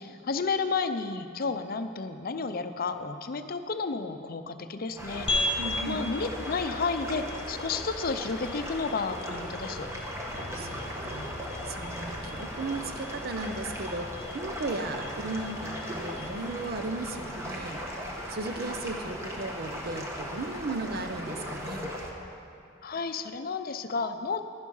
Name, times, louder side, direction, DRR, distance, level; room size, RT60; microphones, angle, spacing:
voice 1, 0.0-9.9 22.8-24.4, left 4 dB, 50° left, 9 dB, 0.6 m, -32 dB
sound 1, 5.0-22.1, equal, 15° right, 1.3 m, -38 dB
sound 2, 5.3-19.9, left 2 dB, 30° left, 1.4 m, -39 dB
voice 2, 5.6-6.0 10.5-11.3 11.6-17.8 18.3-21.9, right 2 dB, 55° right, 8 dB, 0.7 m, -36 dB
11.0 x 11.0 x 5.5 m, 2.5 s
head